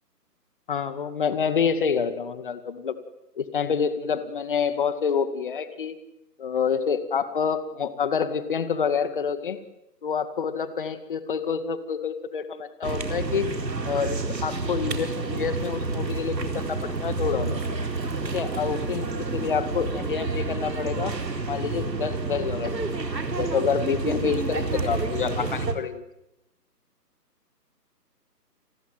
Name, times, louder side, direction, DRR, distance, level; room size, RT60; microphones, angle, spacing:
voice 1, 0.7-2.9 3.4-6.0 6.4-9.6 10.0-13.5 13.9-17.6 18.3-21.1 21.5-26.0, left 6 dB, 30° left, 11 dB, 2.2 m, -27 dB
sound 1, 12.8-25.7, right 3 dB, 85° right, 4.5 m, -29 dB
29.5 x 21.0 x 9.3 m, 0.87 s
hypercardioid pair, 165°, 49 cm